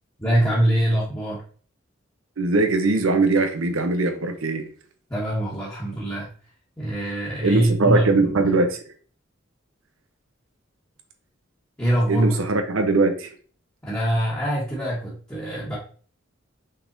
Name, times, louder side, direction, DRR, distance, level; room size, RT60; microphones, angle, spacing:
voice 1, 0.2-1.4 5.1-6.3 6.8-8.6 11.8-12.4 13.8-15.8, right 1 dB, 15° left, -7 dB, 1.2 m, -24 dB
voice 2, 2.4-4.7 7.4-8.8 12.1-13.3, right 3 dB, 90° right, 6 dB, 0.8 m, -21 dB
5.6 x 3.6 x 2.6 m, 0.42 s
head